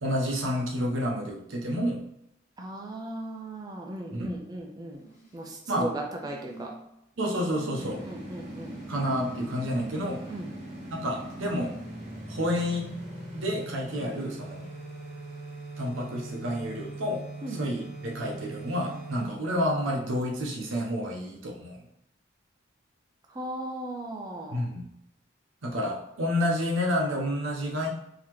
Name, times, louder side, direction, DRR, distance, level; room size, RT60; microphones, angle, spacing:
voice 1, 0.0-2.1 4.1-4.3 5.7-5.9 7.2-8.0 8.9-10.3 10.9-11.8 12.3-12.9 13.3-14.6 15.8-21.8 24.5-24.8 25.6-27.9, equal, 85° right, 0 dB, 0.8 m, -29 dB
voice 2, 2.6-5.0 5.3-6.7 7.8-8.8 10.3-10.5 14.0-14.2 17.4-17.6 19.2-19.4 23.3-24.7, right 1 dB, 20° right, 1 dB, 0.4 m, -37 dB
sound 1, 4.9-5.5 6.2-6.9 7.3-7.7 8.5-10.1 11.3-11.4, right 2 dB, 35° left, 0.9 m, -47 dB
sound 2, 7.8-19.3, right 1 dB, 35° right, 1.3 m, -41 dB
3.9 x 2.8 x 3.0 m, 0.82 s
head